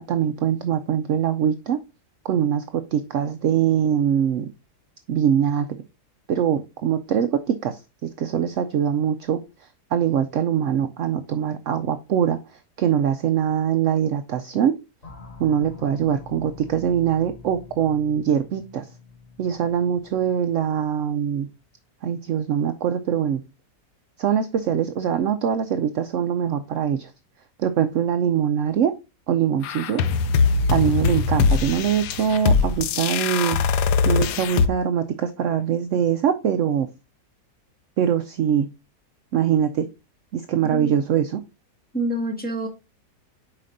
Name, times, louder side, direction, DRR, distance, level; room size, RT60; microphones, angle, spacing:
voice 1, 0.0-1.8 2.2-4.5 5.1-5.7 6.3-9.4 9.9-12.4 12.8-14.7 15.4-18.9 19.4-21.5 22.0-23.4 24.2-27.1 27.6-28.9 29.3-30.0 30.7-33.6 34.0-36.9 38.0-38.7 39.3-39.9 40.3-41.4, right 9 dB, 75° right, 0.7 m, -23 dB
sound 1, 15.0-21.4, left 4 dB, 35° left, 1.6 m, -45 dB
sound 2, 29.6-34.7, left 5 dB, 75° left, 1.2 m, -21 dB
voice 2, 40.6-41.0 41.9-42.7, right 1 dB, 5° left, 1.3 m, -27 dB
7.5 x 4.9 x 2.6 m
omnidirectional pair, 1.8 m